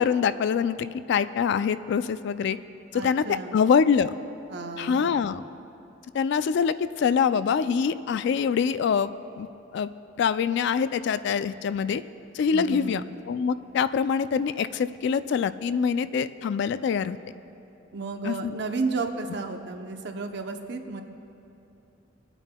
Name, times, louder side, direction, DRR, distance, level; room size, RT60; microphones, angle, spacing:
voice 1, 0.0-2.6 2.9-4.1 4.8-5.4 6.1-9.1 9.4-9.5 9.7-9.9 10.2-12.0 12.3-17.2 18.2-18.6, left 6 dB, 65° left, 13 dB, 0.3 m, -24 dB
voice 2, 2.9-3.6 4.5-5.3 12.5-13.1 17.9-21.0, right 3 dB, 65° right, 5 dB, 0.7 m, -33 dB
26.0 x 8.9 x 2.2 m, 2.8 s
head